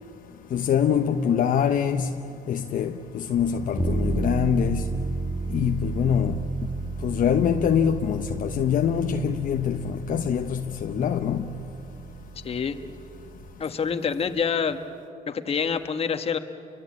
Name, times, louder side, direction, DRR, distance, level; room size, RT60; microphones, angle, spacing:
voice 1, 0.5-2.1 2.5-4.9 5.5-6.5 7.0-11.5, left 8 dB, 50° left, 1.0 m, -24 dB
sound 1, 3.8-13.5, right 3 dB, 25° right, 2.7 m, -32 dB
voice 2, 12.4-12.8 13.6-14.8 15.3-16.4, left 6 dB, 35° left, 1.5 m, -26 dB
29.5 x 23.5 x 8.7 m
cardioid pair, 110°, 17 cm